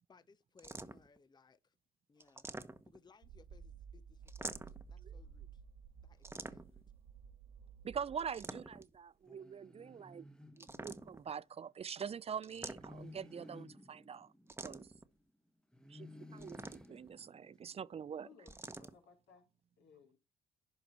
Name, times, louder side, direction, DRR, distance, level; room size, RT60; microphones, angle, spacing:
voice 1, 0.1-1.7 2.1-2.5 2.8-5.6 6.0-6.8, left 5 dB, 25° left, 0.7 m, -66 dB
sound 1, 0.6-1.2 2.2-3.1 4.3-4.9 6.2-6.9 8.2-9.0 10.6-11.3 12.4-13.2 14.5-15.0 16.4-17.1 18.5-18.9, right 2 dB, 15° right, 1.1 m, -47 dB
sound 2, 3.2-8.6, right 6 dB, 80° right, 1.2 m, -54 dB
voice 2, 7.8-10.3 10.5-14.3 14.6-14.9 15.9-18.3, right 7 dB, 35° right, 0.4 m, -44 dB
sound 3, 9.3-11.4 12.5-15.2 15.7-18.0, left 2 dB, 5° left, 1.1 m, -56 dB
voice 3, 18.2-20.2, left 5 dB, 80° left, 3.1 m, -62 dB
11.0 x 5.0 x 4.4 m
supercardioid pair, 65°, 17 cm